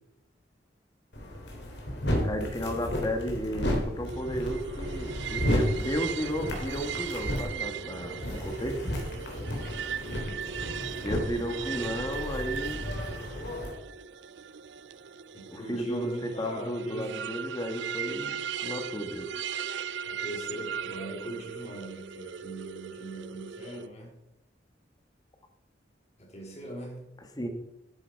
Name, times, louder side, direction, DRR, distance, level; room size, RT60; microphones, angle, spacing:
sound 1, 1.1-13.7, left 1 dB, 70° left, 3.2 m, -33 dB
voice 1, 2.2-8.9 11.0-12.8 15.5-18.4 18.6-19.3 27.4-27.5, equal, 20° left, 5 dB, 1.6 m, -33 dB
sound 2, 4.1-23.9, right 8 dB, 80° right, 0.4 m, -38 dB
voice 2, 8.2-8.6 10.0-10.5 11.3-11.8 13.4-13.7 15.3-17.2 20.1-24.2 26.2-27.1, right 1 dB, 40° left, -1 dB, 3.8 m, -41 dB
12.0 x 9.9 x 4.7 m, 0.87 s
head